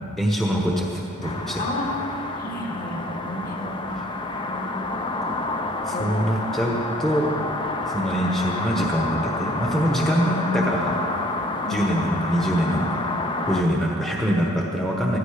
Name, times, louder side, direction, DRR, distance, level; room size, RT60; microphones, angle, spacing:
voice 1, 0.2-1.7 3.9-4.0 5.2-5.3 5.8-7.3 7.8-11.0 11.7-13.0 13.5-15.2, equal, ahead, -2 dB, 1.1 m, -24 dB
sound 1, 1.2-13.6, left 2 dB, 25° left, 0.7 m, -29 dB
voice 2, 1.6-1.9 2.4-4.0 4.5-4.8 5.9-6.2 11.6-11.9 13.5-13.7, left 1 dB, 45° left, -1 dB, 2.4 m, -32 dB
15.5 x 14.0 x 5.0 m, 2.9 s
head